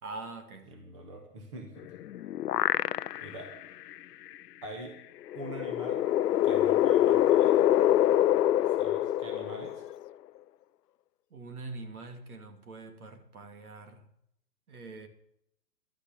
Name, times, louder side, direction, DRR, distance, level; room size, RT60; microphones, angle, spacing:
voice 1, 0.0-0.7 11.3-14.1 14.7-15.1, right 3 dB, 65° right, 6 dB, 2.6 m, -43 dB
voice 2, 0.7-1.9 3.2-3.5 4.6-5.0 5.3-6.0 6.4-7.6 8.6-9.9, right 2 dB, 20° right, 3 dB, 1.2 m, -43 dB
sound 1, 1.8-3.5 3.9-4.0 5.3-10.1, left 12 dB, 80° left, 0.6 m, -25 dB
12.0 x 9.4 x 7.2 m, 0.75 s
hypercardioid pair, 170°, 47 cm